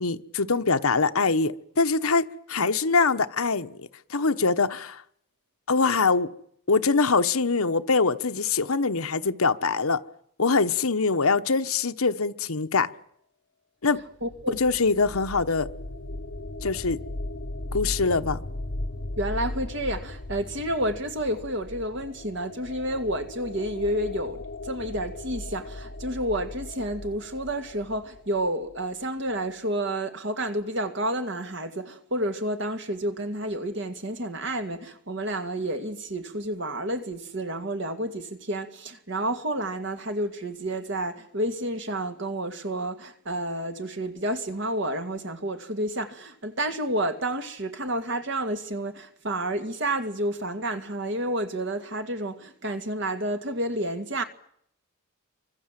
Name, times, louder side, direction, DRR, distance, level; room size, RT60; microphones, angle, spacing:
voice 1, 0.0-3.8 4.1-5.0 5.7-6.3 6.7-10.0 10.4-12.9 13.8-14.0 14.6-15.7 16.6-17.0 17.7-18.4, left 4 dB, 75° left, 1.1 m, -23 dB
sound 1, 14.0-28.8, left 2 dB, 50° left, 1.0 m, -37 dB
voice 2, 14.2-14.6 19.2-54.2, right 1 dB, 55° right, 2.2 m, -30 dB
28.0 x 24.5 x 7.6 m
head